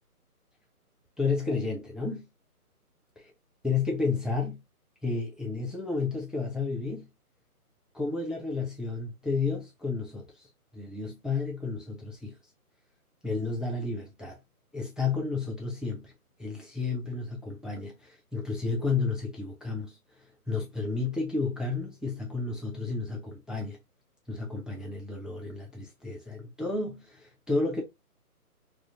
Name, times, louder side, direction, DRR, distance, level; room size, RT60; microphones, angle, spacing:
voice 1, 1.2-2.3 3.6-4.6 5.0-7.1 7.9-10.3 10.7-12.4 13.2-14.4 14.7-16.1 16.4-19.9 20.5-23.8 24.3-27.8, left 4 dB, ahead, 0.3 m, -31 dB
2.4 x 2.4 x 2.7 m
hypercardioid pair, 170°, 46 cm